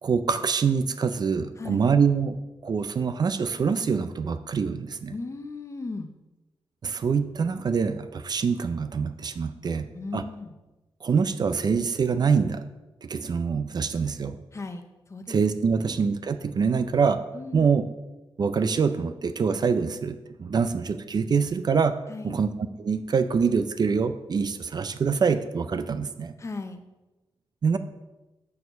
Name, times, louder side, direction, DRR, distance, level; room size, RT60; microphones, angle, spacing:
voice 1, 0.0-2.3 2.6-5.1 6.8-9.9 10.1-10.2 11.0-12.7 13.0-14.4 15.3-17.2 17.5-17.8 18.4-21.9 22.2-22.5 22.8-26.3 27.6-27.8, right 5 dB, 50° right, 10 dB, 0.4 m, -25 dB
voice 2, 1.6-1.9 5.1-6.1 9.9-10.6 14.5-15.4 15.8-16.0 17.3-17.7 22.1-22.4 26.4-26.8, left 3 dB, 30° left, 8 dB, 0.7 m, -36 dB
6.9 x 6.4 x 5.5 m, 1.1 s
wide cardioid pair, 165°, 9 cm